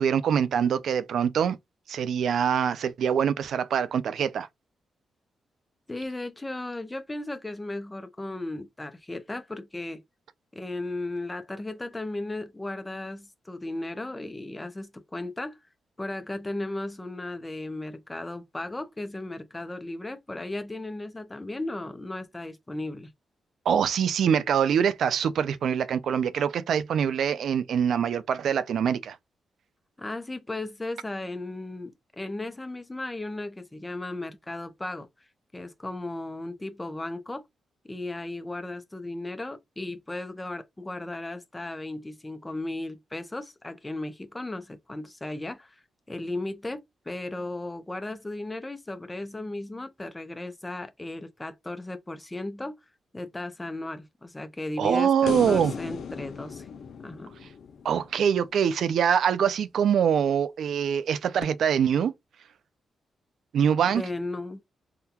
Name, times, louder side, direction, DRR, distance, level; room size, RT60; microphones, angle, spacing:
voice 1, 0.0-1.6 1.9-4.5 23.7-29.2 54.8-55.7 57.8-62.1 63.5-64.0, right 8 dB, 75° right, 0.3 m, -24 dB
voice 2, 5.9-10.0 10.5-15.6 16.0-23.1 30.0-35.1 35.5-37.4 37.8-45.8 46.1-52.8 53.1-56.7 57.0-57.3 63.9-64.6, left 2 dB, 15° left, 0.6 m, -35 dB
sound 1, 55.3-58.6 61.4-61.5, left 6 dB, 70° left, 0.4 m, -36 dB
3.6 x 2.2 x 2.8 m
cardioid pair, 105°, 0 cm